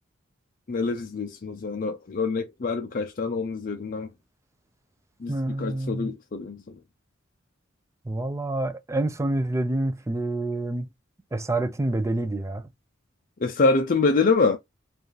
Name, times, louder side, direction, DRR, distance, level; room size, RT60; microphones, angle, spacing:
voice 1, 0.7-4.1 5.2-6.8 13.4-14.6, left 4 dB, 45° left, 0.4 m, -25 dB
voice 2, 5.3-6.1 8.1-10.9 11.3-12.7, right 2 dB, 15° right, 0.4 m, -27 dB
4.7 x 2.5 x 3.1 m
head